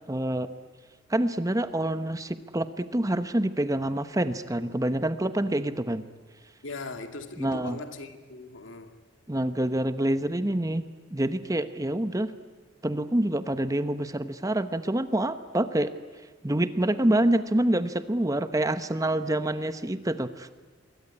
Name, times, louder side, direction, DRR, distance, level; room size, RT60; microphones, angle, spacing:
voice 1, 0.1-0.5 1.1-6.0 7.4-7.8 9.3-10.8 11.1-12.3 12.8-15.9 16.4-20.5, right 1 dB, 15° right, 11 dB, 0.9 m, -26 dB
voice 2, 6.6-9.0, left 3 dB, 75° left, 7 dB, 2.3 m, -39 dB
26.0 x 22.5 x 9.8 m, 1.3 s
head